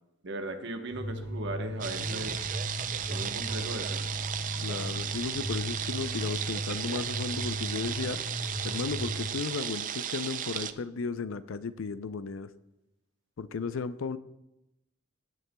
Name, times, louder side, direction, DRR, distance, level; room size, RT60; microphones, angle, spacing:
voice 1, 0.2-2.4 3.1-4.2, right 1 dB, 60° right, 5 dB, 1.0 m, -38 dB
sound 1, 0.9-9.3, equal, 30° left, 2.3 m, -37 dB
sound 2, 1.8-10.7, right 9 dB, 40° right, 0.4 m, -35 dB
voice 2, 4.6-8.2 8.6-12.5 13.4-14.2, left 4 dB, 75° left, 13 dB, 0.5 m, -34 dB
16.0 x 9.6 x 2.2 m, 0.90 s
head